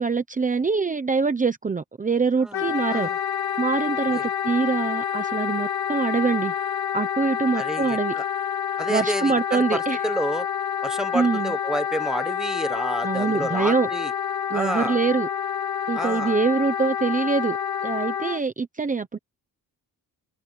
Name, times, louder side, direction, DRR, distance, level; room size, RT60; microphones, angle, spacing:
voice 1, 0.0-3.1 3.6-6.5 6.9-8.1 8.9-10.0 11.1-11.5 13.0-13.9 14.5-15.3 15.9-17.6 17.8-19.2, right 4 dB, 20° right, 0.9 m, -24 dB
Wind instrument woodwind instrument, 2.5-18.4, left 8 dB, 85° left, 2.7 m, -28 dB
voice 2, 7.5-8.2 8.8-10.5 10.8-14.1 14.5-15.0 15.9-16.4, right 1 dB, ahead, 1.1 m, -30 dB
wide cardioid pair, 175°, 37 cm